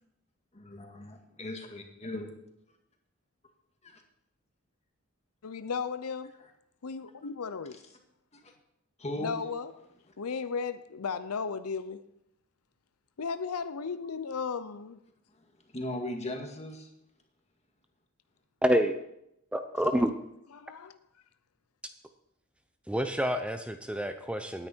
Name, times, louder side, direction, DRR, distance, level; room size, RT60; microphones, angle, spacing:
voice 1, 0.5-2.3 3.8-4.0 6.4-6.5 8.3-8.5 9.0-9.4 10.1-10.2 15.3-16.9, left 1 dB, 30° left, 2.0 m, -39 dB
voice 2, 5.4-6.5 6.8-7.8 9.2-9.9 10.2-12.0 13.2-15.0 20.5-21.0, left 5 dB, 85° left, 0.7 m, -35 dB
voice 3, 18.6-18.9 19.5-20.2 22.9-24.7, equal, 5° right, 0.6 m, -28 dB
17.0 x 9.9 x 4.5 m
head